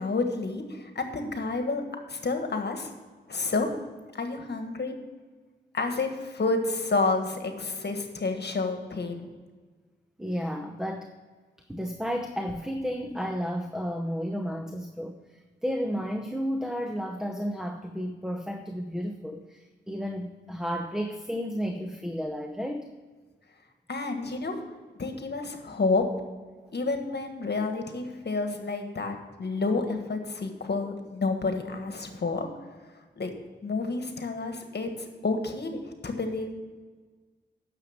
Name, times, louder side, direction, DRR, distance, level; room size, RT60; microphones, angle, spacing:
voice 1, 0.0-1.8 2.1-2.9 3.3-3.7 4.1-4.9 5.7-9.3 23.9-24.6 25.0-26.0 26.7-32.5 33.2-33.3 33.6-36.5, left 3 dB, 60° left, 5 dB, 1.5 m, -29 dB
voice 2, 10.2-11.1 11.7-15.2 15.6-22.9, equal, 5° right, 5 dB, 0.8 m, -32 dB
9.9 x 6.8 x 7.2 m, 1.4 s
wide cardioid pair, 70°, 19 cm